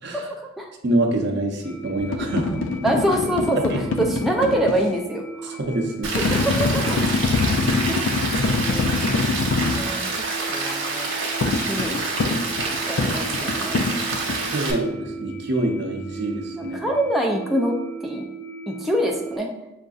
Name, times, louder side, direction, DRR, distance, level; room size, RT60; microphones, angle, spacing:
voice 1, 0.1-0.7 2.5-2.6 2.8-3.6 4.0-5.6 6.1-7.0 7.9-8.3 8.6-9.1 9.7-10.0 10.5-11.1 11.7-12.1 12.9-13.8 16.6-17.7 18.0-18.2 18.7-19.5, right 1 dB, ahead, -1 dB, 0.3 m, -25 dB
voice 2, 0.8-2.6 3.7-3.8 5.4-6.1 14.5-16.8, right 1 dB, 60° right, 2 dB, 0.6 m, -25 dB
sound 1, 1.6-19.4, right 4 dB, 20° left, 1.3 m, -37 dB
sound 2, 2.0-4.9 6.1-9.9 11.4-14.4, left 4 dB, 75° left, 0.4 m, -24 dB
Rain, 6.0-14.7, right 3 dB, 85° right, 1.0 m, -27 dB
6.3 x 2.6 x 2.3 m, 0.93 s
head